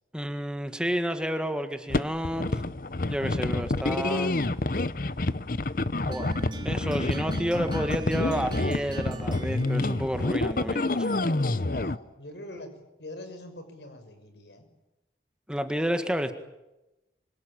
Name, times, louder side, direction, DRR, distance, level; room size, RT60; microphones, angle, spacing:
voice 1, 0.1-2.6 3.1-4.4 6.0-6.3 6.6-11.2 15.5-16.3, equal, 5° right, 8 dB, 1.7 m, -30 dB
sound 1, 1.9-12.0, left 2 dB, 50° left, 0.9 m, -28 dB
sound 2, 6.1-11.2, right 1 dB, 25° right, 2.5 m, -40 dB
voice 2, 11.5-12.7 13.0-14.6, left 1 dB, 80° left, 8 dB, 6.3 m, -43 dB
27.0 x 25.0 x 8.9 m, 0.98 s
head